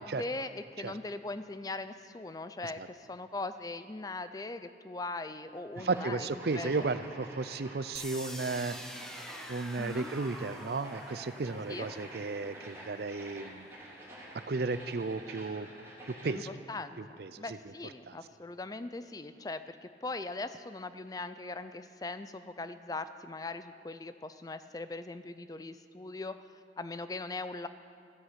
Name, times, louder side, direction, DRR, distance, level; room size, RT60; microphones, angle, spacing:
voice 1, 0.0-6.3 6.5-6.7 9.8-10.1 11.7-11.9 16.2-16.4 16.7-27.7, left 3 dB, 20° left, 11 dB, 0.4 m, -40 dB
sound 1, 5.8-16.5, right 1 dB, 15° right, 3.2 m, -49 dB
voice 2, 5.8-8.8 9.5-13.7 14.5-15.7 16.0-16.5 17.0-17.6 18.1-18.2, right 3 dB, 60° right, 13 dB, 0.5 m, -34 dB
sound 2, 7.9-13.9, equal, 5° left, 0.8 m, -47 dB
13.5 x 9.9 x 8.1 m, 2.3 s
head